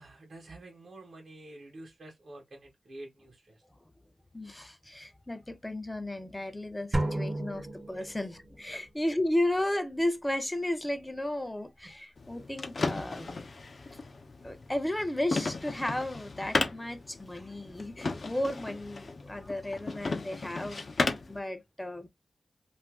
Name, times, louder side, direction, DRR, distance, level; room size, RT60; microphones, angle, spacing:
voice 1, 0.0-3.6 11.8-11.9, right 2 dB, 65° right, 1.0 m, -48 dB
voice 2, 4.3-13.4 14.4-22.1, left 1 dB, 10° left, 0.6 m, -34 dB
sound 1, 6.9-8.6, right 1 dB, 35° right, 0.6 m, -32 dB
sound 2, 12.2-21.4, left 3 dB, 55° left, 0.7 m, -35 dB
2.6 x 2.5 x 3.6 m
wide cardioid pair, 110°, 0 cm